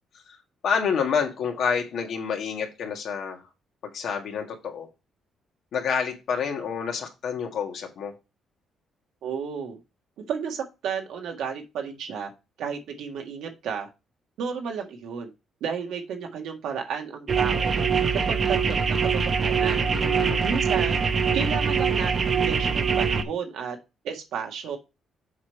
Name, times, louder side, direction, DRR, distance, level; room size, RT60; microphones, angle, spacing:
voice 1, 0.6-3.4 3.8-4.9 5.7-8.1 19.8-20.4, left 6 dB, 70° left, 1.9 m, -28 dB
voice 2, 9.2-9.8 10.3-12.3 12.6-13.9 14.4-15.3 15.6-17.9 18.1-19.1 19.4-19.8 20.4-21.0 21.3-23.8 24.0-24.8, right 6 dB, 80° right, 1.7 m, -32 dB
sound 1, 17.3-23.2, right 6 dB, 45° right, 0.8 m, -23 dB
7.3 x 4.9 x 4.5 m
cardioid pair, 90°, 0 cm